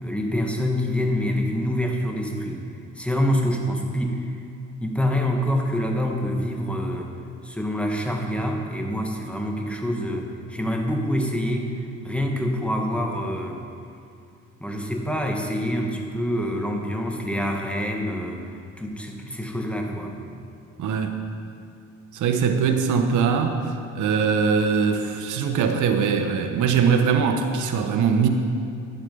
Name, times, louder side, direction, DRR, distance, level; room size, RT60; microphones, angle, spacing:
voice 1, 0.0-2.7 2.9-4.4 4.8-7.1 7.4-11.7 12.0-13.6 14.6-20.2, equal, 5° left, 1 dB, 1.4 m, -26 dB
voice 2, 20.8-21.1 22.1-28.3, right 6 dB, 80° right, 6 dB, 0.9 m, -22 dB
11.5 x 8.2 x 5.4 m, 2.4 s
cardioid pair, 90°, 30 cm